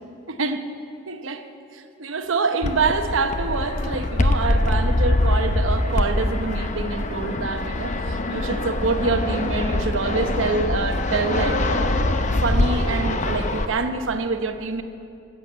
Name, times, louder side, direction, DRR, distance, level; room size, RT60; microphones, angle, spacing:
voice 1, 0.3-0.7 1.1-11.9 12.3-14.8, right 4 dB, 80° right, 0.9 m, -26 dB
Fixed-wing aircraft airplane, 2.6-13.6, left 1 dB, 35° left, 0.7 m, -23 dB
13.5 x 8.5 x 8.6 m
head